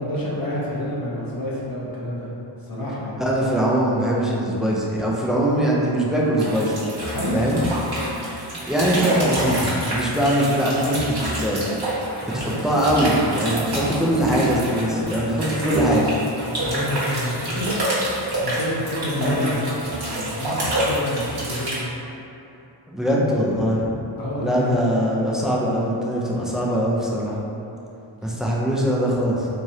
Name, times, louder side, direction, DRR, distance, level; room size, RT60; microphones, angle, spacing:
voice 1, 0.0-2.3 2.7-3.2 7.1-7.4 16.5-17.8 18.2-21.7 24.2-24.8, left 1 dB, 45° left, -6 dB, 0.8 m, -28 dB
voice 2, 3.2-6.8 7.3-7.6 8.7-11.6 12.2-16.0 19.2-19.6 22.9-23.9 24.4-27.4 28.2-29.5, equal, ahead, -5 dB, 0.3 m, -22 dB
sound 1, 6.4-21.8, right 1 dB, 50° right, 1.1 m, -27 dB
3.6 x 3.2 x 2.7 m, 2.8 s
wide cardioid pair, 145°, 49 cm